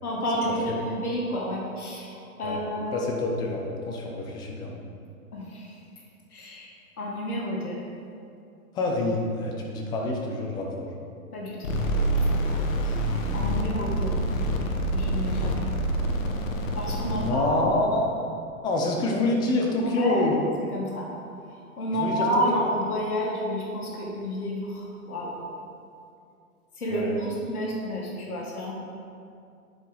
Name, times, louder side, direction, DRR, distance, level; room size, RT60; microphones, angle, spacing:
voice 1, 0.0-3.1 5.3-5.8 6.3-6.7 7.0-7.8 11.3-12.6 12.8-14.2 14.9-15.5 16.7-17.4 20.0-20.4 20.7-21.1 21.5-25.4 26.8-28.7, equal, 75° left, -2 dB, 1.8 m, -30 dB
voice 2, 2.9-4.8 8.7-10.9 17.1-18.3 18.6-20.4 21.9-22.7 26.9-27.1, left 2 dB, 10° left, 0 dB, 0.4 m, -27 dB
sound 1, 11.6-17.3, right 1 dB, 60° left, 1.1 m, -26 dB
9.9 x 4.6 x 4.0 m, 2.4 s
hypercardioid pair, 115°, 44 cm